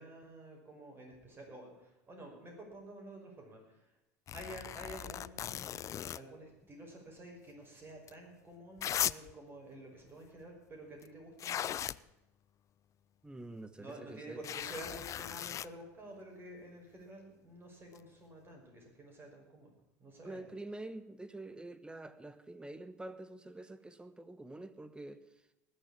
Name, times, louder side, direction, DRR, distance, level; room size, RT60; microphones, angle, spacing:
voice 1, 0.0-3.9 4.3-11.9 13.8-19.7 20.0-20.6, right 1 dB, 25° right, 5.7 m, -50 dB
sound 1, 4.3-6.2 8.1-8.2 8.8-9.3 11.0-11.1 11.4-12.0 14.4-15.7 18.0-18.1, left 10 dB, 35° left, 0.4 m, -38 dB
voice 2, 13.2-14.4 20.2-25.2, right 2 dB, 10° right, 1.2 m, -47 dB
19.5 x 6.8 x 8.6 m
hypercardioid pair, 80°, 9 cm